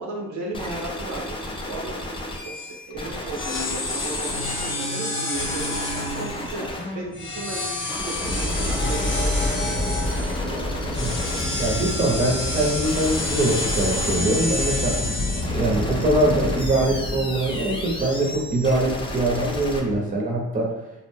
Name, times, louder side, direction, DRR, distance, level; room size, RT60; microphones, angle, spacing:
voice 1, 0.0-2.0 2.4-2.5 2.9-10.1, right 2 dB, 70° right, 0 dB, 0.6 m, -35 dB
sound 1, 0.5-19.8, left 1 dB, 15° left, 0.4 m, -34 dB
sound 2, 2.6-2.8 3.4-6.5 7.1-10.4 10.9-15.4, left 2 dB, 40° left, 0.8 m, -29 dB
sound 3, 8.2-20.0, left 1 dB, 75° left, 1.0 m, -29 dB
voice 2, 11.6-15.0 15.3-20.7, right 1 dB, 25° right, 0 dB, 0.7 m, -23 dB
2.4 x 2.1 x 3.3 m, 0.95 s
cardioid pair, 90°, 30 cm